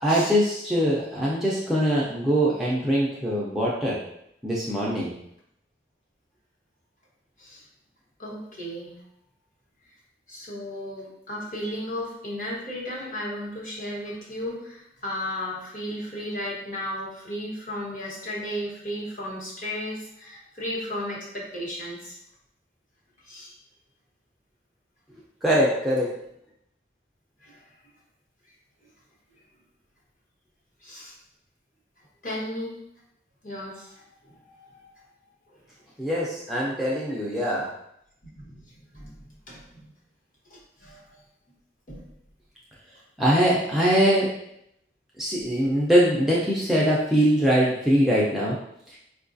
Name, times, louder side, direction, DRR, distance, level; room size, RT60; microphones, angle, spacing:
voice 1, 0.0-4.0 4.4-5.2 25.4-26.1 36.0-37.7 43.2-44.3 45.2-48.6 48.9-49.0, equal, ahead, -6 dB, 0.4 m, -22 dB
voice 2, 8.2-9.0 10.3-22.2 23.2-23.6 27.4-27.6 30.8-31.2 32.2-32.7 33.4-34.9 38.4-39.2 39.5-39.9 40.5-41.0 41.9-42.1, left 1 dB, 45° left, -5 dB, 1.0 m, -35 dB
4.6 x 2.3 x 2.5 m, 0.76 s
head